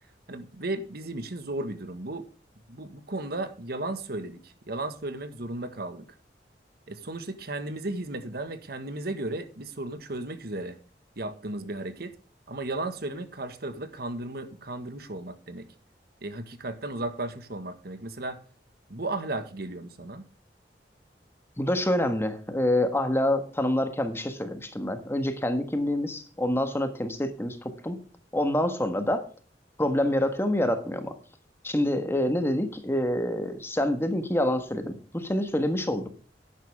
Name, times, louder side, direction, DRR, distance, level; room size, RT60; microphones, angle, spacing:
voice 1, 0.3-2.3 2.7-6.1 6.9-10.8 11.2-12.2 12.5-15.7 16.2-18.4 18.9-20.3, right 2 dB, 65° right, 9 dB, 1.6 m, -35 dB
voice 2, 21.6-28.0 28.3-29.3 29.8-31.1 31.6-36.1, left 1 dB, 15° left, 7 dB, 1.4 m, -27 dB
12.0 x 10.5 x 3.5 m, 0.37 s
head